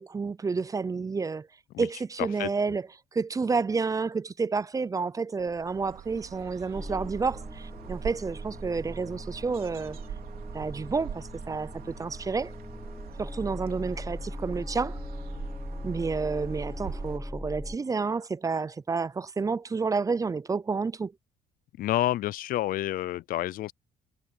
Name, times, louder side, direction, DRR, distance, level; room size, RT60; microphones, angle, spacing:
voice 1, 0.0-1.5 1.8-2.9 3.1-10.0 10.5-12.5 13.2-15.0 15.8-21.1, right 4 dB, 20° right, 0.6 m, -30 dB
sound 1, 5.4-17.2, right 10 dB, 60° right, 3.6 m, -44 dB
sound 2, 6.7-17.8, left 1 dB, 5° left, 1.1 m, -39 dB
voice 2, 21.8-23.7, left 14 dB, 60° left, 0.4 m, -29 dB
cardioid pair, 110°, 17 cm